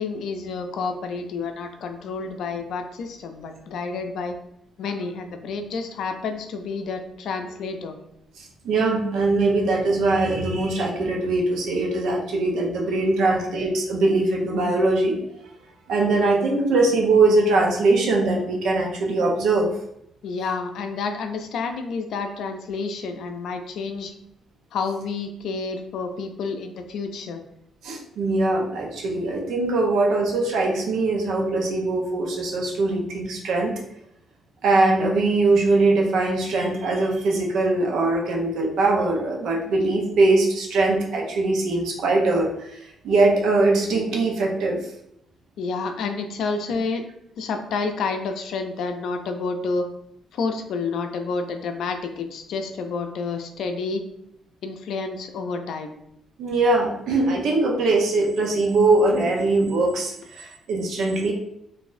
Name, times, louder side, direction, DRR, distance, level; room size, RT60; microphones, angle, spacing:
voice 1, 0.0-4.4 4.8-7.9 13.2-13.4 20.2-24.1 24.7-27.4 45.6-47.0 47.4-49.9 50.3-54.0 54.6-55.9, left 4 dB, 75° left, 6 dB, 0.5 m, -29 dB
voice 2, 8.4-15.2 15.9-19.7 27.8-33.7 34.6-44.8 56.4-61.3, right 2 dB, 80° right, 0 dB, 0.8 m, -21 dB
3.9 x 2.6 x 2.6 m, 0.78 s
cardioid pair, 90°, 0 cm